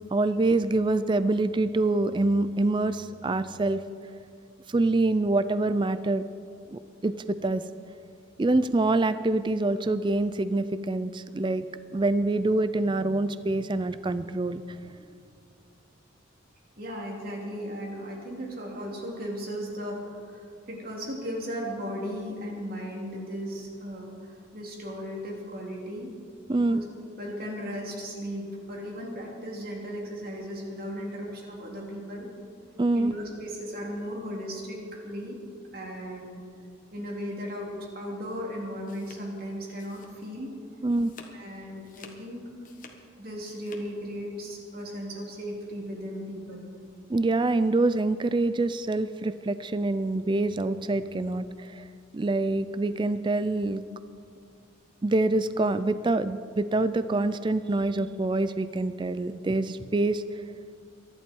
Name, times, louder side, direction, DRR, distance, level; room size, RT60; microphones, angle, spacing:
voice 1, 0.1-3.8 4.7-6.2 6.7-7.6 8.4-11.7 11.9-15.1 26.5-26.8 32.8-33.1 40.8-41.1 47.1-51.9 52.1-53.8 55.0-60.4, right 2 dB, 25° right, 13 dB, 0.4 m, -26 dB
voice 2, 16.8-26.1 26.7-32.3 32.9-35.4 35.7-36.4 36.9-40.5 41.3-42.4 43.2-46.7, equal, 50° right, -2 dB, 3.2 m, -36 dB
sound 1, 38.6-40.5 40.8-41.4 41.8-43.8, left 4 dB, 40° left, 1.5 m, -51 dB
23.5 x 11.0 x 4.6 m, 2.3 s
head